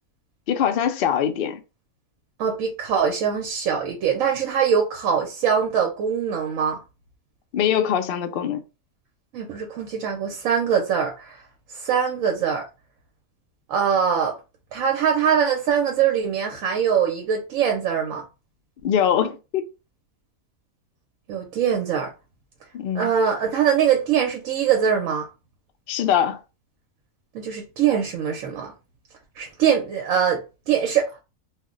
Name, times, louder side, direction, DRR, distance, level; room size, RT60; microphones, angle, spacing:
voice 1, 0.5-1.6 7.5-8.6 18.8-19.6 22.7-23.1 25.9-26.4, left 9 dB, 85° left, 0.5 m, -22 dB
voice 2, 2.4-6.8 9.3-11.4 11.7-12.6 13.7-14.4 14.7-18.2 21.3-22.1 22.9-25.2 27.3-28.7 29.4-30.4 30.7-31.1, right 7 dB, 70° right, 0.9 m, -22 dB
2.4 x 2.1 x 3.6 m
omnidirectional pair, 1.5 m